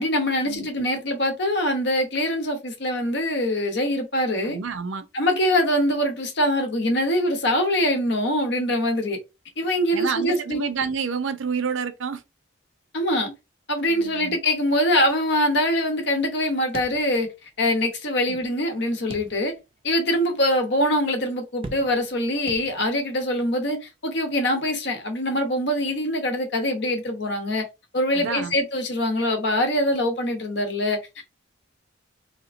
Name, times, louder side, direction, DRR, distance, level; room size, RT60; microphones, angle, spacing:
voice 1, 0.0-4.6 5.1-9.2 9.6-10.6 12.9-13.3 13.7-17.3 17.6-19.5 19.8-27.6 27.9-31.0, left 1 dB, 60° left, 0.9 m, -23 dB
voice 2, 4.4-5.1 9.9-12.2 13.9-14.4 18.3-18.4 28.1-28.5, right 6 dB, 75° right, 0.5 m, -29 dB
sound 1, 16.7-17.6 17.9-18.0 19.1-19.8 20.3-20.4 21.6-22.2 22.5-23.1, right 2 dB, 30° right, 0.4 m, -40 dB
3.4 x 2.8 x 2.5 m
head